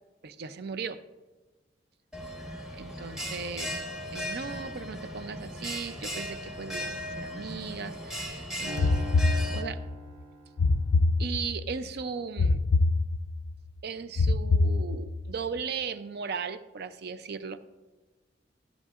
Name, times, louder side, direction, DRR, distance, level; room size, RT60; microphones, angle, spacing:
voice 1, 0.2-1.0 2.8-3.8 4.1-9.2 9.5-9.8 11.2-12.6 13.8-17.6, right 5 dB, 60° right, 13 dB, 0.4 m, -37 dB
Bell, 2.1-9.6, equal, 5° right, 1.0 m, -37 dB
sound 1, 8.7-11.1, right 1 dB, 45° right, 1.6 m, -42 dB
sound 2, 8.8-10.0 10.6-11.7 12.4-13.5 14.2-15.3, left 3 dB, 55° left, 0.3 m, -25 dB
13.5 x 7.6 x 2.4 m, 1.2 s
head